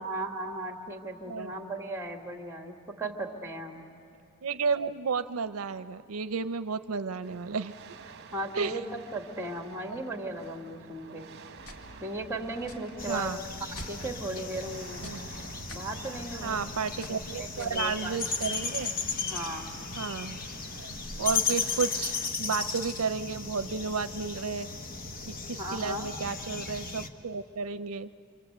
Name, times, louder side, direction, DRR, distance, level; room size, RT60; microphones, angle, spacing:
voice 1, 0.0-3.8 8.3-11.3 12.0-15.0 15.7-16.6 17.1-18.2 19.2-19.7 25.6-26.1, right 2 dB, 10° right, 4 dB, 2.1 m, -37 dB
voice 2, 4.4-7.7 8.5-8.8 13.1-13.4 15.0-15.2 16.4-18.9 20.0-20.4 21.2-24.7 25.3-28.3, right 5 dB, 75° right, 12 dB, 0.6 m, -32 dB
sound 1, 7.2-22.3, right 4 dB, 50° right, 1.0 m, -50 dB
sound 2, 11.6-19.6, equal, 90° left, 2.4 m, -49 dB
sound 3, 13.0-27.1, left 5 dB, 45° left, 1.1 m, -35 dB
27.0 x 26.0 x 8.0 m, 2.4 s
head